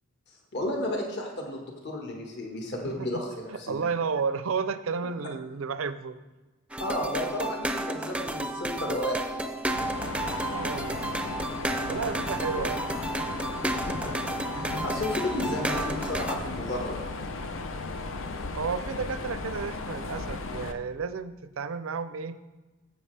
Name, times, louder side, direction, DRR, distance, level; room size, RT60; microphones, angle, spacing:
voice 1, 0.3-3.8 6.8-9.6 10.4-10.6 12.6-12.7 13.7-14.2 14.5-17.0, left 1 dB, 55° left, 0 dB, 1.5 m, -33 dB
voice 2, 3.5-6.2 10.5-11.1 11.9-12.8 18.6-22.4, right 5 dB, 80° right, 13 dB, 0.5 m, -32 dB
sound 1, 6.7-16.4, right 1 dB, 5° right, 0.5 m, -32 dB
Mechanisms, 9.7-20.7, left 3 dB, 70° left, 0.7 m, -35 dB
16.5 x 7.7 x 3.3 m, 1.2 s
head